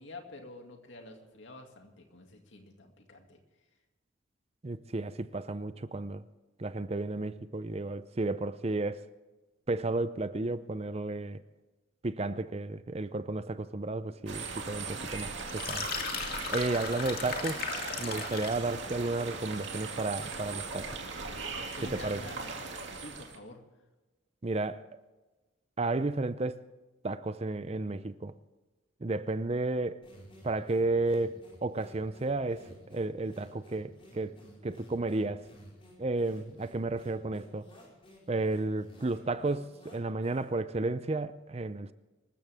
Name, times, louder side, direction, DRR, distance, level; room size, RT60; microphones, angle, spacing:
voice 1, 0.0-3.4 21.5-22.5 23.0-23.6, left 2 dB, 60° left, 2.4 m, -48 dB
voice 2, 4.6-6.2 6.6-9.0 9.7-11.4 12.0-15.9 16.5-17.6 18.0-21.0 21.9-22.2 24.4-24.8 25.8-26.6 27.0-28.3 29.0-30.0 30.4-34.3 34.6-35.4 36.0-37.7 38.3-41.9, right 2 dB, 30° right, 0.5 m, -32 dB
Gentle Creek in Rain Forest with Cicadas, 14.3-23.4, right 4 dB, 60° right, 2.5 m, -39 dB
sound 1, 15.4-18.7, left 5 dB, 45° left, 2.2 m, -36 dB
sound 2, 30.0-40.7, equal, 25° left, 4.8 m, -55 dB
25.5 x 14.0 x 3.6 m
head